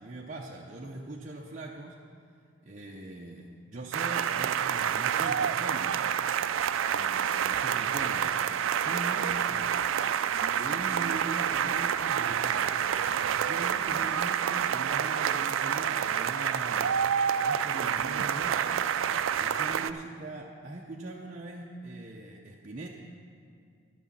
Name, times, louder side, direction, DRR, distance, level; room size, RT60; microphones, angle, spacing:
voice 1, 0.0-2.0 2.6-6.0 6.9-8.3 8.7-9.7 10.4-12.7 13.2-16.9 17.4-18.8 19.4-22.9, right 2 dB, 40° right, -3 dB, 0.6 m, -41 dB
sound 1, 3.9-19.9, right 8 dB, 85° right, 0.4 m, -28 dB
11.5 x 6.2 x 7.3 m, 2.3 s
head